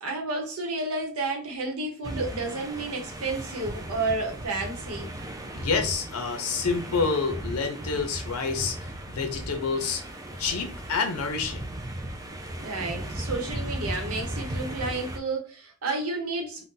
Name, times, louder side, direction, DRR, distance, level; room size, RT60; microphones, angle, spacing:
voice 1, 0.0-5.1 12.6-16.6, right 3 dB, 75° right, 0.9 m, -31 dB
sound 1, 2.0-15.2, right 1 dB, 15° right, 0.3 m, -36 dB
voice 2, 5.5-10.0 10.4-11.7, left 4 dB, 75° left, 0.5 m, -28 dB
2.6 x 2.1 x 3.7 m
head